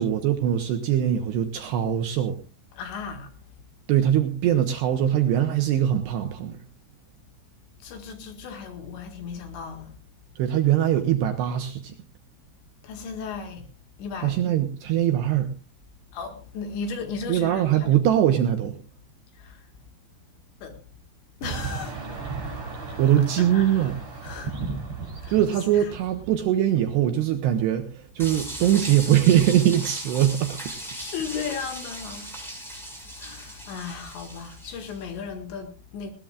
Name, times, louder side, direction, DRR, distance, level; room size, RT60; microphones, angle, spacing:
voice 1, 0.0-2.4 3.9-6.6 10.4-11.9 14.2-15.5 17.3-18.8 23.0-24.0 25.3-30.6 31.3-31.4, right 11 dB, 75° right, 2.6 m, -22 dB
voice 2, 2.7-3.3 7.8-10.0 12.8-13.7 14.0-14.4 16.1-18.0 19.3-19.7 20.6-20.8 21.4-22.0 22.9-23.0 23.4-23.9 24.2-24.5 25.2-25.4 25.7-25.9 30.9-32.3 32.7-32.8 33.2-36.1, left 6 dB, 65° left, 4.0 m, -36 dB
sound 1, 21.4-26.5, right 4 dB, 30° right, 6.1 m, -35 dB
sound 2, 28.2-35.0, right 1 dB, ahead, 5.6 m, -38 dB
20.0 x 18.0 x 2.5 m
omnidirectional pair, 5.9 m